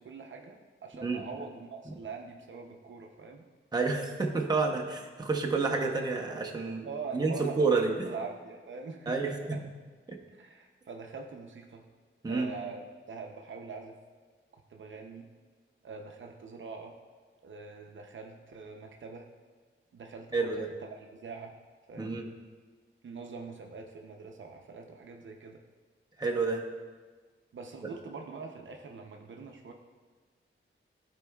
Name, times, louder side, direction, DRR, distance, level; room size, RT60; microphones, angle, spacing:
voice 1, 0.0-3.4 6.8-9.6 10.3-11.8 12.3-14.0 14.5-15.3 15.8-16.9 17.4-19.3 19.9-21.5 21.9-22.2 23.0-25.6 27.5-29.7, right 4 dB, 70° right, 2 dB, 0.7 m, -43 dB
voice 2, 3.7-6.9 7.1-8.1 9.1-9.6 10.1-10.2 12.2-12.5 20.3-20.7 22.0-22.2 26.2-26.6, right 4 dB, 20° right, 0 dB, 0.8 m, -29 dB
13.5 x 4.6 x 2.3 m, 1.4 s
wide cardioid pair, 125°, 21 cm